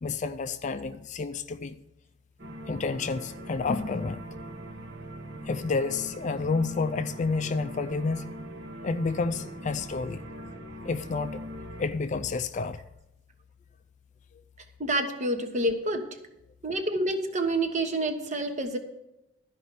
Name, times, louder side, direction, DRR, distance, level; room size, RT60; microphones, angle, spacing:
voice 1, 0.0-1.8 2.7-4.2 5.5-8.3 8.8-10.2 10.8-11.4 11.8-12.8, left 4 dB, 35° left, 0.4 m, -30 dB
sound 1, 2.4-11.8, equal, 55° right, 1.4 m, -41 dB
voice 2, 14.8-16.0 16.6-18.8, right 1 dB, 35° right, 1.2 m, -28 dB
12.5 x 5.2 x 8.2 m
head